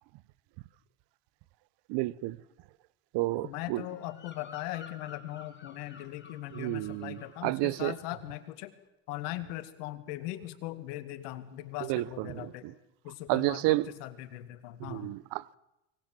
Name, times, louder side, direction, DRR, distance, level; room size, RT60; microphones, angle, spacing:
voice 1, 1.9-2.4 3.1-3.8 6.5-7.9 11.8-12.7 13.3-13.9 14.8-15.6, right 20 dB, 65° right, 0.9 m, -31 dB
voice 2, 3.4-8.7 9.1-12.7 13.0-15.1, left 15 dB, 85° left, 2.3 m, -40 dB
Bird vocalization bird call bird song, 3.9-7.4 7.7-8.1, left 5 dB, 25° left, 3.4 m, -52 dB
24.0 x 19.0 x 7.6 m
supercardioid pair, 90°, 46 cm